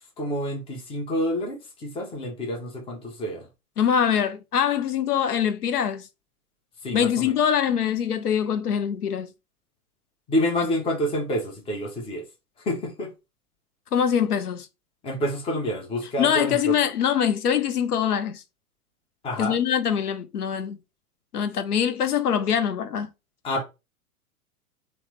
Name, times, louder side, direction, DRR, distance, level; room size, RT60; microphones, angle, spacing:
voice 1, 0.2-3.5 6.8-7.3 10.3-12.3 12.6-13.1 15.0-16.7 19.2-19.6 23.4-23.6, equal, 10° left, 0.6 m, -28 dB
voice 2, 3.8-6.1 6.9-9.3 13.9-14.7 16.2-18.4 19.4-20.8 21.3-23.1, left 8 dB, 85° left, 0.5 m, -23 dB
3.1 x 2.0 x 3.0 m
figure-of-eight pair, 105°, 45 cm